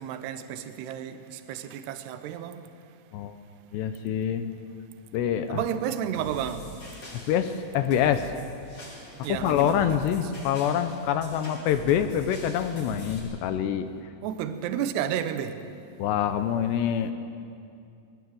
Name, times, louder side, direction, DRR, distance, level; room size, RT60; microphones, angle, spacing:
voice 1, 0.0-2.6 5.5-6.7 9.2-10.2 14.2-15.6, right 9 dB, 75° right, 2.7 m, -32 dB
voice 2, 3.7-4.4 5.1-5.6 7.3-8.3 9.3-13.9 16.0-17.1, left 9 dB, 75° left, 2.6 m, -26 dB
sound 1, 6.1-13.2, equal, 35° left, 7.4 m, -44 dB
22.5 x 19.5 x 7.8 m
omnidirectional pair, 5.6 m